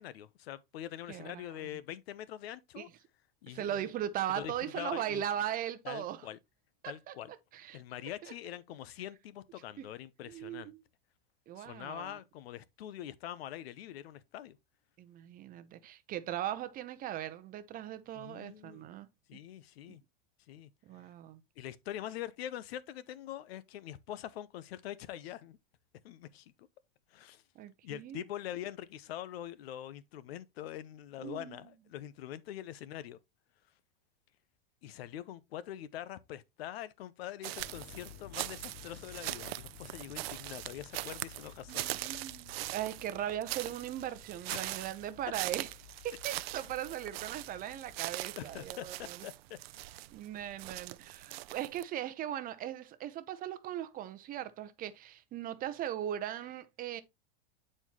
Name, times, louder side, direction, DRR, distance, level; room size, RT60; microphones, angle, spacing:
voice 1, 0.0-2.9 3.4-3.9 4.3-5.2 5.8-6.4 6.8-7.3 7.7-10.7 11.6-14.6 18.1-18.9 19.3-20.0 20.5-20.7 21.6-25.6 26.0-26.7 27.1-27.4 27.8-33.2 34.8-41.9 44.5-44.7 48.4-49.6, left 12 dB, 85° left, 0.8 m, -44 dB
voice 2, 1.1-1.7 2.8-2.9 3.5-6.3 6.8-7.1 7.5-7.8 8.2-8.3 9.8-9.9 10.3-10.8 11.5-12.2 15.0-19.1 19.9-20.0 20.8-21.4 27.6-28.3 31.2-31.6 41.7-45.7 46.0-49.2 50.1-57.0, right 11 dB, 30° right, 0.7 m, -39 dB
sound 1, 37.4-51.8, right 18 dB, 80° right, 0.5 m, -41 dB
sound 2, 37.6-48.6, left 12 dB, 35° left, 0.8 m, -55 dB
9.1 x 4.4 x 2.9 m
supercardioid pair, 145°, 30 cm